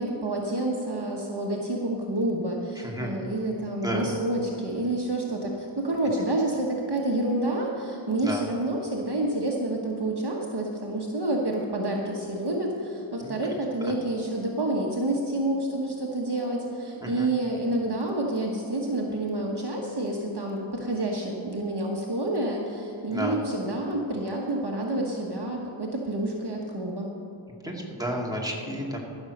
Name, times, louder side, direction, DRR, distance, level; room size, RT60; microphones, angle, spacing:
voice 1, 0.0-27.1, right 1 dB, 50° right, -1 dB, 1.3 m, -28 dB
voice 2, 27.6-29.0, equal, 5° right, -1 dB, 2.1 m, -31 dB
14.0 x 6.4 x 6.5 m, 2.9 s
wide cardioid pair, 55°, 50 cm